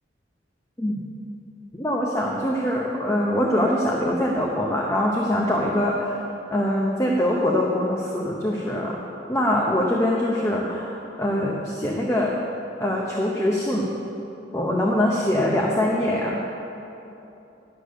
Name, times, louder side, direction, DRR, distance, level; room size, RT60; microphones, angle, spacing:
voice 1, 1.7-6.2 6.5-9.0 9.3-12.3 12.8-13.9 14.5-16.6, left 1 dB, 15° left, -2 dB, 0.8 m, -23 dB
11.5 x 6.8 x 6.4 m, 2.9 s
head